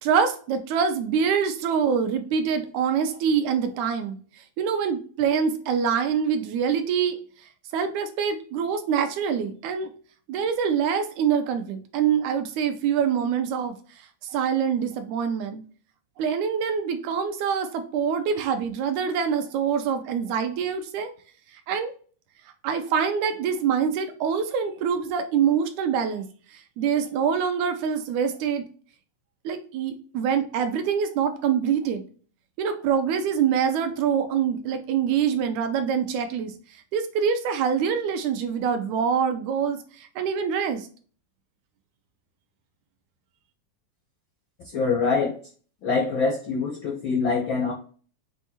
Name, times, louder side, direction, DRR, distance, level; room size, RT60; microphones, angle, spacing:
voice 1, 0.0-4.2 4.6-7.2 7.7-9.9 10.3-13.8 14.2-15.6 16.2-21.1 21.5-21.9 22.6-26.3 26.5-28.6 29.5-32.0 32.6-36.5 36.9-40.9, right 7 dB, 80° right, 7 dB, 1.9 m, -25 dB
voice 2, 44.7-45.3 45.8-47.7, left 4 dB, 80° left, 0 dB, 1.0 m, -24 dB
6.1 x 2.4 x 2.8 m, 0.42 s
omnidirectional pair, 3.5 m